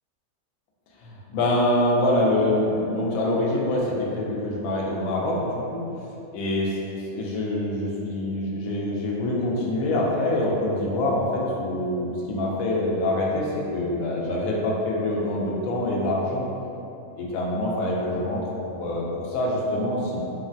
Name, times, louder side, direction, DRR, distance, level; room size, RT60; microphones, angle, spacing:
voice 1, 1.0-5.4 5.7-5.8 6.3-6.7 7.1-16.5 17.2-18.4 18.8-20.2, left 1 dB, 70° left, -4 dB, 0.9 m, -25 dB
3.1 x 2.1 x 2.5 m, 2.8 s
omnidirectional pair, 1.6 m